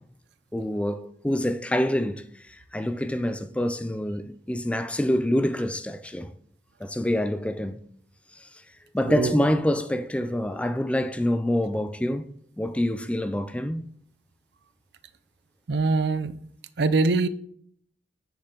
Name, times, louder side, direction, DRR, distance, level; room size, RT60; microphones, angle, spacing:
voice 1, 0.5-2.2 2.7-6.3 6.8-7.8 8.9-12.3 12.6-13.9, left 1 dB, 5° left, 0.4 m, -26 dB
voice 2, 15.7-16.4 16.8-17.3, right 3 dB, 70° right, 0.5 m, -23 dB
7.9 x 6.8 x 3.9 m
head